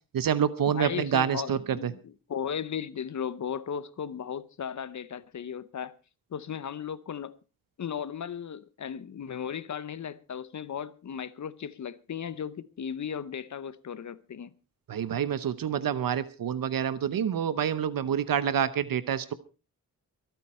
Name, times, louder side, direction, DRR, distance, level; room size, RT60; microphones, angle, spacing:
voice 1, 0.1-1.9 14.9-19.3, right 8 dB, 75° right, 0.9 m, -27 dB
voice 2, 0.7-5.9 6.3-7.4 7.8-14.5, left 8 dB, 55° left, 0.8 m, -36 dB
24.0 x 9.3 x 4.3 m
wide cardioid pair, 125°, 34 cm